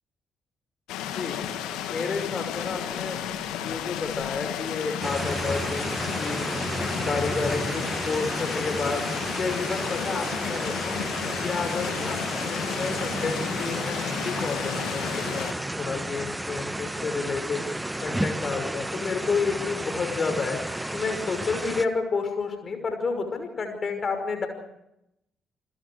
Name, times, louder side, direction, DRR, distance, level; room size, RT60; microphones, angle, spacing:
sound 1, 0.9-15.5, left 10 dB, 65° left, 2.0 m, -33 dB
voice 1, 1.8-3.2 3.6-5.9 6.2-6.5 7.0-9.1 9.4-11.0 11.4-12.2 12.5-15.5 15.8-17.7 18.0-20.6 20.9-24.5, left 4 dB, 40° left, 6 dB, 5.5 m, -30 dB
sound 2, 5.0-21.9, right 1 dB, 10° right, 1.3 m, -32 dB
28.5 x 21.0 x 4.8 m, 0.83 s
figure-of-eight pair, 40°, 0 cm